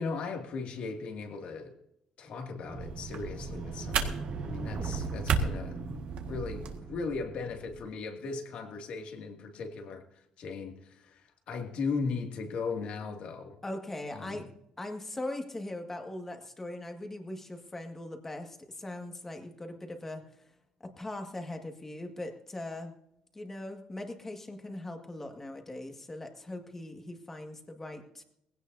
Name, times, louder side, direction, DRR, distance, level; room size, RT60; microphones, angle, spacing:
voice 1, 0.0-1.7 2.2-5.9 6.3-13.6 14.1-14.5, left 4 dB, 60° left, 3 dB, 2.3 m, -37 dB
sound 1, 2.7-7.9, right 4 dB, 50° right, 1.8 m, -39 dB
sound 2, 2.8-6.8, right 6 dB, 70° right, 1.7 m, -34 dB
voice 2, 13.6-14.5 14.8-20.2 20.8-22.9 23.3-28.2, left 1 dB, 15° left, 4 dB, 1.8 m, -40 dB
20.0 x 16.5 x 2.7 m, 0.78 s
cardioid pair, 145°, 2 cm